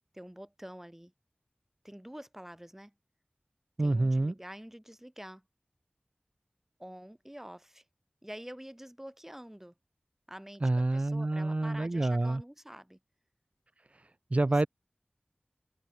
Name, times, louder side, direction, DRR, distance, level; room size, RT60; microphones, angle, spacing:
voice 1, 0.1-1.1 1.8-2.9 3.8-5.4 6.8-7.8 8.2-9.7 10.3-13.0 14.5-14.7, equal, 10° right, 1.6 m, -47 dB
voice 2, 3.8-4.3 10.6-12.4 13.9-14.0 14.3-14.7, right 2 dB, 40° right, 0.6 m, -27 dB
wide cardioid pair, 55°, 3 cm